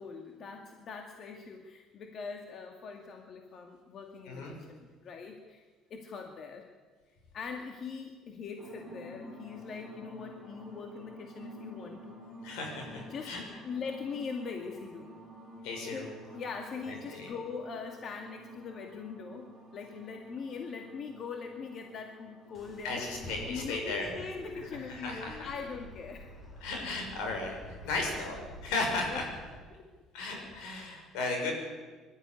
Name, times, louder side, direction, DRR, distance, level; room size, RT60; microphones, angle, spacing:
voice 1, 0.0-5.6 5.9-6.7 7.3-12.2 13.1-13.4 13.6-15.2 15.9-19.5 19.7-23.1 23.5-26.3 27.4-27.5 27.8-27.9 28.3-28.5 29.1-29.4 29.7-29.8 31.2-31.5, left 5 dB, 50° left, 3 dB, 2.1 m, -42 dB
sound 1, 8.6-23.9, equal, 15° left, 5.6 m, -51 dB
voice 2, 12.4-13.4 15.6-16.1 16.8-17.3 22.8-24.1 24.8-25.4 26.6-27.6 27.8-28.4 28.6-29.2 30.1-31.5, left 3 dB, 85° left, 2 dB, 6.5 m, -35 dB
sound 2, 22.5-29.6, equal, 30° left, 6.0 m, -48 dB
21.0 x 13.0 x 9.6 m, 1.4 s
supercardioid pair, 100°, 0 cm